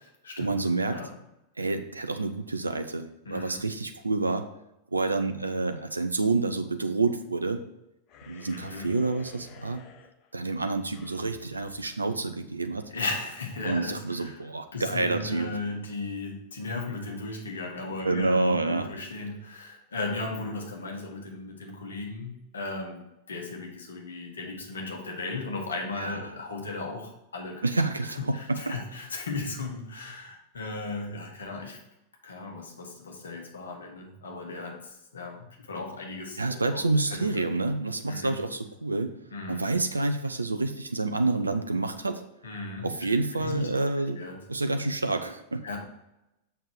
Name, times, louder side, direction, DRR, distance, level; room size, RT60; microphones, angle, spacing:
voice 1, 0.4-1.0 1.6-4.5 4.9-7.6 8.3-9.8 10.3-12.9 13.6-15.5 18.0-18.9 26.0-26.2 27.6-28.8 36.4-39.1 39.5-42.2 42.8-44.2 44.5-45.6, right 3 dB, 80° right, 8 dB, 0.5 m, -28 dB
voice 2, 3.2-3.6 8.5-8.9 12.9-14.4 14.7-27.6 28.3-31.8 32.2-37.4 38.1-38.4 39.3-39.6 42.4-42.9 43.3-43.7 44.1-44.4 45.6-45.8, left 3 dB, 70° left, 1 dB, 1.7 m, -36 dB
sound 1, 8.1-12.8, left 7 dB, 40° left, 1.0 m, -52 dB
7.0 x 5.7 x 4.8 m, 0.88 s
figure-of-eight pair, 90°, 0 cm